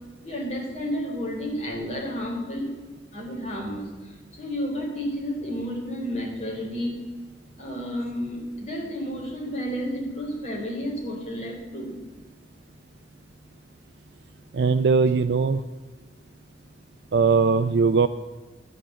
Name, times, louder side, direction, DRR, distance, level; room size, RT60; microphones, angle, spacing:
voice 1, 0.2-2.7 3.1-7.0 7.6-12.0, equal, 40° left, -1 dB, 3.8 m, -31 dB
voice 2, 14.5-15.6 17.1-18.1, right 4 dB, 70° right, 11 dB, 0.5 m, -20 dB
11.5 x 9.3 x 7.6 m, 1.3 s
head